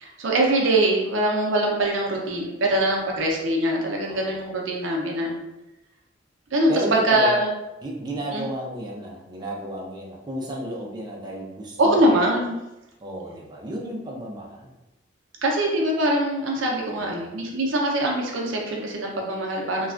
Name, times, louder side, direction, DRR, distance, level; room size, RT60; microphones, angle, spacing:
voice 1, 0.0-5.4 6.5-6.7 7.0-7.5 8.3-8.4 11.8-12.6 15.4-19.9, right 1 dB, 85° right, -1 dB, 0.6 m, -23 dB
voice 2, 4.1-4.4 6.7-7.4 7.8-12.2 13.0-14.7 17.0-17.4, right 1 dB, 20° right, -2 dB, 0.4 m, -32 dB
3.2 x 2.3 x 2.4 m, 0.98 s
head